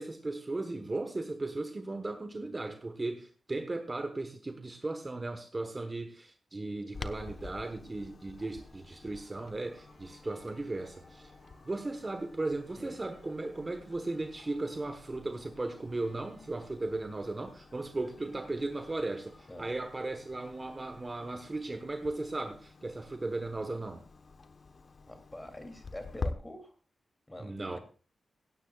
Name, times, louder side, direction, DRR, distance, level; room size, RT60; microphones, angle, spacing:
voice 1, 0.0-11.3 11.6-24.0 27.4-27.8, right 2 dB, 25° right, 1.1 m, -36 dB
Clock, 6.9-26.3, left 3 dB, 45° left, 1.1 m, -48 dB
sound 1, 8.4-21.4, right 2 dB, 50° right, 6.7 m, -63 dB
voice 2, 25.1-26.7 27.3-27.8, left 1 dB, 15° left, 2.8 m, -45 dB
17.0 x 16.5 x 2.4 m
wide cardioid pair, 150°, 0 cm